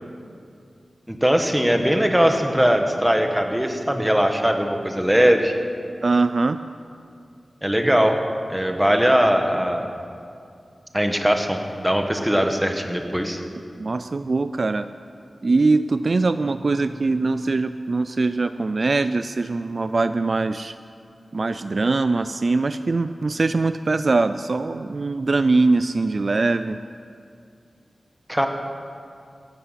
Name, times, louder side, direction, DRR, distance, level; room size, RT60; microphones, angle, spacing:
voice 1, 1.1-5.5 7.6-8.2 8.5-9.9 10.9-13.4 28.3-28.5, equal, 5° right, 4 dB, 1.2 m, -20 dB
voice 2, 6.0-6.6 13.8-14.9 15.4-20.8 21.3-26.8, right 3 dB, 55° right, 11 dB, 0.3 m, -22 dB
15.5 x 11.0 x 5.7 m, 2.4 s
wide cardioid pair, 100°, 0 cm